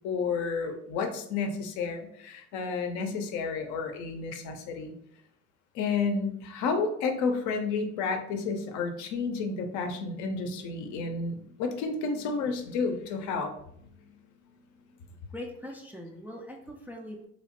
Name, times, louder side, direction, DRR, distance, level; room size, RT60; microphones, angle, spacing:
voice 1, 0.0-4.9 5.7-13.5, left 4 dB, 65° left, 5 dB, 0.6 m, -31 dB
voice 2, 15.3-17.3, left 1 dB, 5° right, 0 dB, 0.3 m, -41 dB
3.0 x 2.0 x 2.9 m, 0.71 s
supercardioid pair, 85°, 32 cm